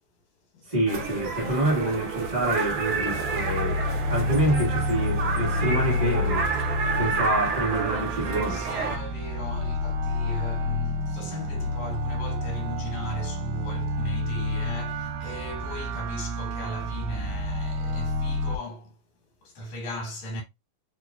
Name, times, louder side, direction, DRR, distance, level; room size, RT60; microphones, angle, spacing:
voice 1, 0.6-3.8 4.1-6.5 7.0-8.6, right 1 dB, 30° right, 0.6 m, -27 dB
sound 1, 0.9-9.0, right 4 dB, 65° right, 1.4 m, -30 dB
sound 2, 2.7-18.6, left 1 dB, 85° right, 2.2 m, -29 dB
voice 2, 8.5-19.0 19.4-20.4, left 1 dB, 55° left, 2.5 m, -37 dB
5.1 x 4.0 x 2.4 m
omnidirectional pair, 3.9 m